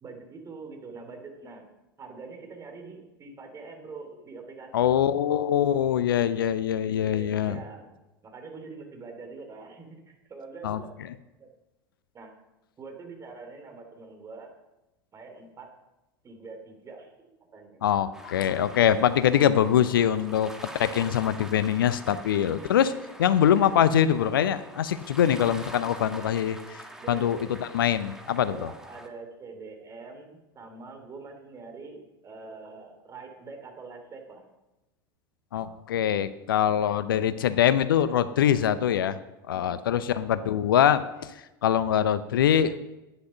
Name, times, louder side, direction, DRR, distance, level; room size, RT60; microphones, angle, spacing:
voice 1, 0.0-1.7 2.0-4.9 6.8-10.9 11.4-11.5 12.1-12.3 12.8-14.5 15.1-15.7 16.2-17.8 20.0-20.1 26.2-26.4 27.0-27.6 28.4-34.5 39.5-40.1, right 4 dB, 25° right, 4 dB, 3.1 m, -44 dB
voice 2, 4.7-7.6 10.6-10.8 17.8-20.5 20.8-22.9 23.2-26.6 27.1-28.7 35.5-39.2 39.5-41.3 41.6-43.0, left 9 dB, 65° left, 14 dB, 0.6 m, -23 dB
sound 1, 18.1-29.1, right 1 dB, 5° right, 1.6 m, -45 dB
11.5 x 10.0 x 5.5 m, 0.98 s
figure-of-eight pair, 80°, 12 cm